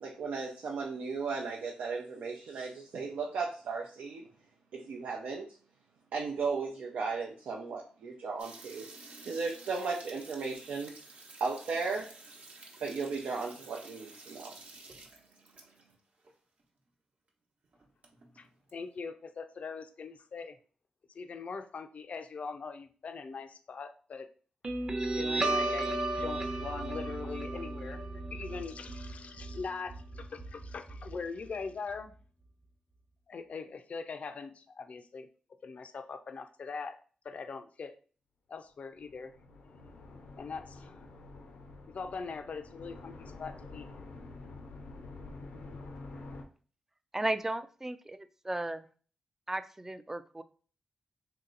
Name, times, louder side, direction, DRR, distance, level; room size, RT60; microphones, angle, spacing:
voice 1, 0.0-4.2 4.7-5.5 6.1-8.9 9.3-10.9 11.4-12.1 12.8-14.5, right 4 dB, 85° right, -1 dB, 0.6 m, -35 dB
sound 1, 8.4-15.9 16.2-16.3 16.6-16.7 17.3-17.4 17.6-18.7, right 3 dB, 60° right, 1.0 m, -52 dB
voice 2, 18.4-20.6 21.1-24.3 25.1-32.1 33.3-35.3 35.6-37.0 37.2-37.9 38.5-39.3 40.4-41.0 41.9-43.9, left 5 dB, 55° left, 8 dB, 0.5 m, -42 dB
Guitar, 24.6-31.6, right 2 dB, 35° right, 0.8 m, -34 dB
sound 2, 38.9-46.4, left 3 dB, 90° left, 0.7 m, -48 dB
voice 3, 47.1-48.8 49.5-50.4, right 1 dB, 15° right, 11 dB, 0.4 m, -35 dB
3.2 x 2.8 x 3.8 m, 0.40 s
cardioid pair, 75°, 3 cm